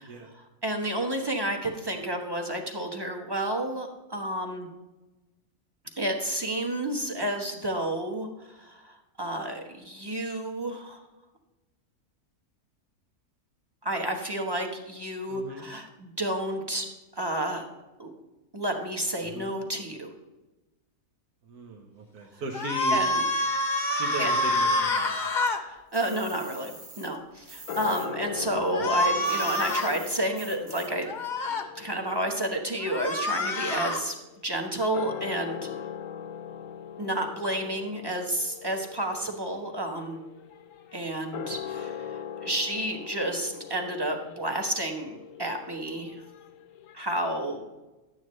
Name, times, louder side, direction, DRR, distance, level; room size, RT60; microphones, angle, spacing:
voice 1, 0.3-4.7 6.0-11.0 13.8-16.9 17.1-17.6 18.0-18.1 18.5-20.1 22.9-23.2 24.2-24.4 25.6-31.1 31.7-34.2 34.4-35.7 37.0-40.2 40.9-46.2 46.9-47.7, right 1 dB, 15° right, 2 dB, 1.2 m, -31 dB
voice 2, 15.3-15.6 19.2-19.5 21.4-23.0 23.9-25.3 28.8-28.9, right 2 dB, 75° right, 1 dB, 1.5 m, -38 dB
sound 1, 22.5-25.6 28.7-29.9 31.1-31.6 32.8-34.0, left 1 dB, 35° left, 0.9 m, -26 dB
Spray Deodorant, 25.9-28.1 28.4-31.1, right 2 dB, 35° right, 1.4 m, -45 dB
sound 2, 27.7-34.3 34.8-46.9, left 8 dB, 65° left, 1.0 m, -41 dB
12.0 x 9.3 x 3.2 m, 1.1 s
omnidirectional pair, 1.6 m